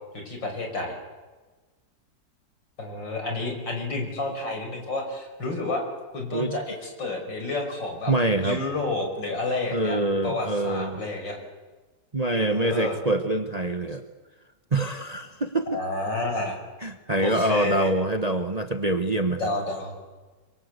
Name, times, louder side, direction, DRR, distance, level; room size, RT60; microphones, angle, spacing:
voice 1, 0.1-1.0 2.8-5.8 6.1-8.1 8.4-10.0 10.2-11.4 12.4-13.0 15.7-16.6 17.2-17.9 19.4-19.9, left 2 dB, 80° left, 3 dB, 6.1 m, -30 dB
voice 2, 8.1-8.6 9.7-11.0 12.1-14.0 14.7-15.8 16.8-19.4, right 2 dB, 25° right, 8 dB, 1.1 m, -25 dB
26.5 x 23.5 x 8.2 m, 1.3 s
omnidirectional pair, 2.0 m